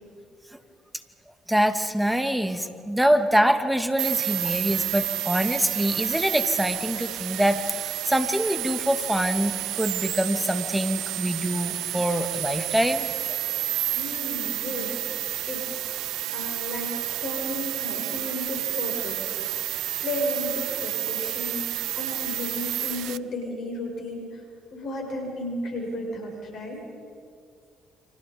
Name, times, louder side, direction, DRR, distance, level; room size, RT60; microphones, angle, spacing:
voice 1, 1.5-13.4, equal, 5° right, 7 dB, 2.5 m, -25 dB
sound 1, 4.0-23.2, right 13 dB, 70° right, 0.6 m, -30 dB
voice 2, 13.9-15.7 16.3-24.4 24.7-26.8, left 1 dB, 60° left, 1 dB, 6.5 m, -34 dB
29.5 x 25.5 x 5.4 m, 2.2 s
hypercardioid pair, 50°, 0 cm